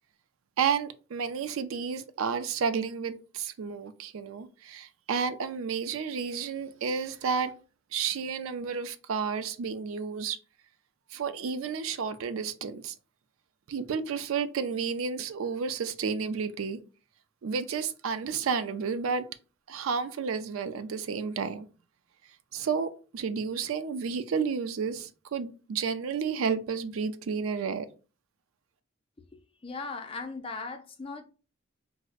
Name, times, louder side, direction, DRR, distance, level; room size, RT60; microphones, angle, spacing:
voice 1, 0.6-7.5 7.9-10.4 11.1-12.9 13.7-16.8 17.4-19.3 19.7-21.7 22.5-27.9, right 6 dB, 85° right, 0.4 m, -31 dB
voice 2, 29.3-31.2, left 4 dB, 25° left, 0.4 m, -38 dB
4.8 x 2.0 x 2.4 m
head